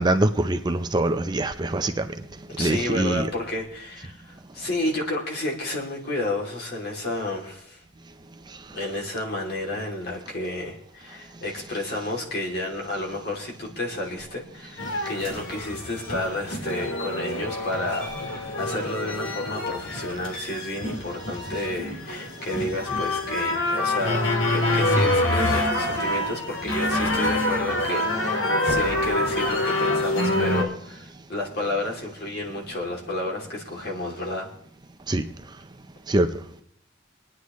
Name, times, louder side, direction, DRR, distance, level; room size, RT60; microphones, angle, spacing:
voice 1, 0.0-1.9 2.6-3.2 35.1-35.2 36.1-36.3, right 1 dB, 20° right, 8 dB, 0.5 m, -23 dB
voice 2, 2.6-7.8 8.7-24.2 24.5-34.5, left 1 dB, 55° left, -1 dB, 2.9 m, -31 dB
sound 1, 14.8-30.6, left 1 dB, 75° left, 2.0 m, -26 dB
26.0 x 9.8 x 3.1 m, 0.70 s
head